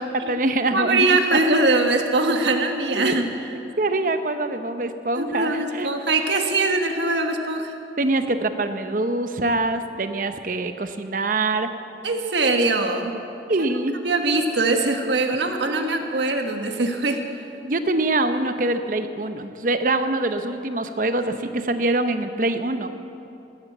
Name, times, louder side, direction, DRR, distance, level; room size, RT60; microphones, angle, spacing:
voice 1, 0.0-1.5 3.0-3.3 3.8-5.9 8.0-11.7 13.5-14.0 15.7-16.0 17.6-22.9, right 2 dB, 50° right, 8 dB, 0.8 m, -24 dB
voice 2, 0.7-3.3 5.2-7.7 12.0-13.1 13.6-13.7 14.0-17.2, right 2 dB, 90° right, 4 dB, 1.5 m, -22 dB
16.0 x 12.0 x 7.3 m, 2.7 s
head